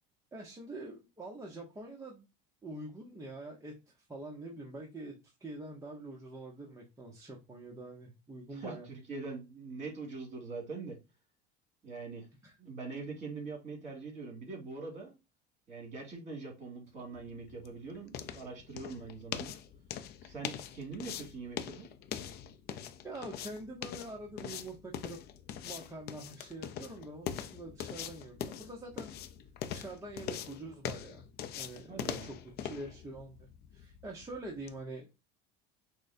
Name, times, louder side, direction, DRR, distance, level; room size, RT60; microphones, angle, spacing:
voice 1, 0.3-2.2 2.6-8.9 12.4-12.6 23.0-25.2 25.6-29.1 29.7-31.2 31.6-32.4 32.6-35.1, right 2 dB, 15° right, 0.9 m, -45 dB
voice 2, 8.5-11.0 11.8-12.3 12.6-15.1 15.7-19.6 20.2-21.9 31.9-32.3, right 4 dB, 35° right, 2.5 m, -43 dB
sound 1, 17.0-34.8, left 9 dB, 50° left, 0.5 m, -43 dB
6.0 x 2.2 x 2.6 m
supercardioid pair, 110°, 21 cm